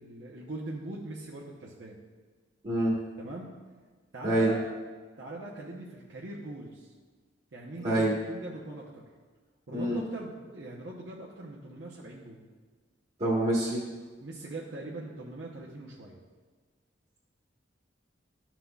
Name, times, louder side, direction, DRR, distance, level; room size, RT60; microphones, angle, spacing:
voice 1, 0.0-2.0 3.2-3.5 4.1-4.6 5.2-6.9 7.5-9.0 9.7-12.4 14.2-16.2, right 2 dB, 65° right, -4 dB, 0.8 m, -41 dB
voice 2, 2.6-3.0 4.2-4.5 7.8-8.1 9.7-10.0 13.2-13.8, right 1 dB, 35° right, -8 dB, 1.4 m, -26 dB
12.5 x 6.0 x 2.3 m, 1.4 s
head